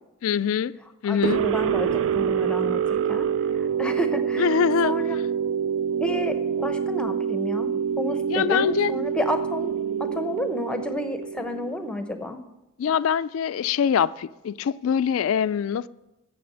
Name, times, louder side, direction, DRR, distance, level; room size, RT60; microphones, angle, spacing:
voice 1, 0.2-0.8 1.0-1.4 4.4-4.9 8.3-8.9 12.8-15.9, left 7 dB, 65° left, 0.3 m, -23 dB
voice 2, 1.1-3.3 3.5-4.6 4.8-5.2 6.0-7.7 8.0-9.7 10.0-12.4, left 1 dB, 5° left, 0.8 m, -31 dB
sound 1, 1.2-12.1, right 7 dB, 60° right, 0.3 m, -26 dB
9.3 x 6.9 x 7.8 m
head